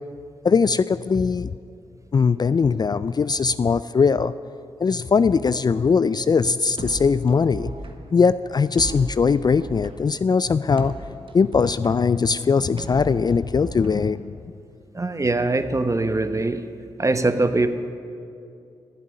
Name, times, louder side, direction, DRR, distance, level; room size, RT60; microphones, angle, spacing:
voice 1, 0.4-1.5 2.1-4.3 4.8-7.7 8.1-11.0 11.3-14.4, left 5 dB, 35° left, 16 dB, 0.3 m, -20 dB
sound 1, 6.8-14.7, right 2 dB, 45° right, 1.3 m, -38 dB
voice 2, 14.9-16.6 17.0-17.7, right 2 dB, 25° right, 9 dB, 1.0 m, -22 dB
12.0 x 7.4 x 9.9 m, 2.5 s
supercardioid pair, 40°, 12 cm